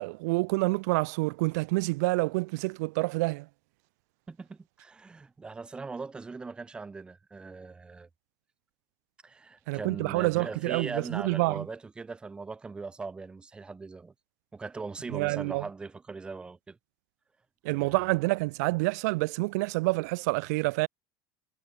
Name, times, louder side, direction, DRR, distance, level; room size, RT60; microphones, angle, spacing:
voice 1, 0.0-3.5 9.7-11.6 15.1-15.6 17.6-20.9, right 25 dB, 80° right, 1.0 m, -28 dB
voice 2, 4.3-8.1 9.2-14.1 14.5-16.8 17.7-18.0, right 4 dB, 10° right, 1.0 m, -40 dB
cardioid pair, 170°, 9 cm